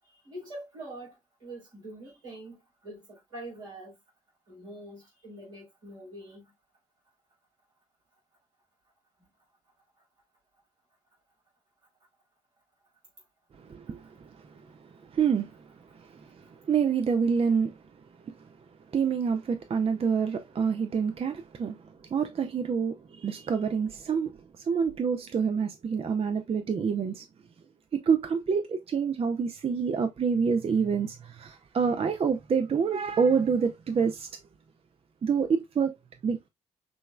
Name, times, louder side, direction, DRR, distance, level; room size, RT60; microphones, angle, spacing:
voice 1, 0.0-4.0 4.5-6.5 9.2-9.3 10.0-10.1 13.2-13.3 16.4-16.5, right 1 dB, 80° right, 3.5 m, -45 dB
voice 2, 13.6-17.8 18.2-18.3 18.9-24.4 24.7-27.2 27.9-34.3 35.2-35.9 36.2-36.5, right 6 dB, 35° right, 0.7 m, -27 dB
6.2 x 3.2 x 2.3 m
figure-of-eight pair, 40°, 17 cm